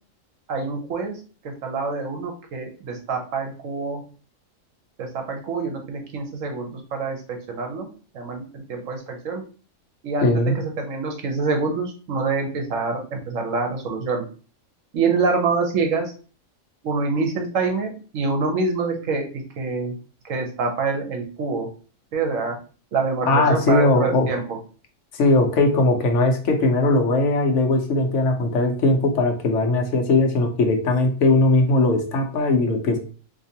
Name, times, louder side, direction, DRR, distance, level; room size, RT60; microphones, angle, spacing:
voice 1, 0.5-1.2 1.4-4.0 5.0-7.9 8.1-9.4 10.0-14.2 14.9-16.1 16.8-20.0 20.2-21.7 22.1-22.6 22.9-24.6, right 4 dB, 70° right, 3 dB, 1.2 m, -26 dB
voice 2, 10.2-10.6 23.3-24.3 25.1-33.0, left 2 dB, 65° left, 4 dB, 1.0 m, -19 dB
3.9 x 2.9 x 2.8 m, 0.38 s
omnidirectional pair, 1.4 m